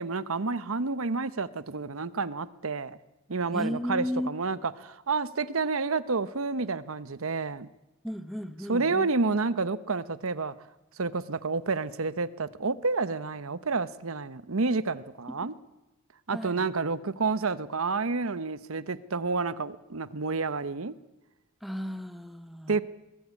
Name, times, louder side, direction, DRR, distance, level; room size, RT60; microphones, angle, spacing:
voice 1, 0.0-3.0 3.3-7.7 8.7-10.5 11.0-15.5 16.3-20.9 22.7-22.8, right 4 dB, 80° right, 15 dB, 0.9 m, -29 dB
voice 2, 3.5-4.3 8.0-9.1 16.3-16.7 21.6-22.8, equal, ahead, 10 dB, 0.9 m, -34 dB
22.0 x 20.5 x 8.5 m, 1.0 s
head